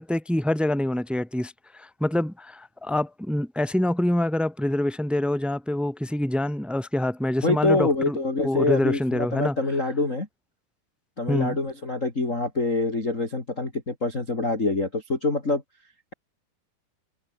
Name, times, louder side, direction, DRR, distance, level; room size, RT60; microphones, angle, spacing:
voice 1, 0.0-8.2 8.4-9.6 11.3-11.6, left 1 dB, ahead, 0.6 m, -26 dB
voice 2, 7.4-10.3 11.2-15.6, left 2 dB, 20° left, 3.7 m, -25 dB
omnidirectional pair, 4.4 m